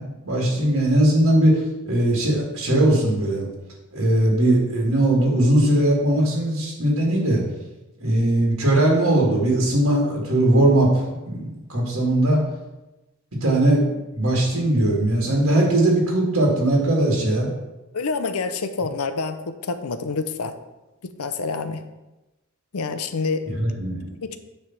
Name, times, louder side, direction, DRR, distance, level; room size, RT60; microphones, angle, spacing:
voice 1, 0.0-3.5 3.9-7.4 8.0-10.9 11.3-12.4 13.4-17.5 23.5-24.1, right 1 dB, 65° right, -2 dB, 2.0 m, -19 dB
voice 2, 17.9-20.5 21.2-21.8 22.7-23.4 24.2-24.4, left 4 dB, 90° left, 10 dB, 0.7 m, -27 dB
9.4 x 3.4 x 5.8 m, 1.0 s
head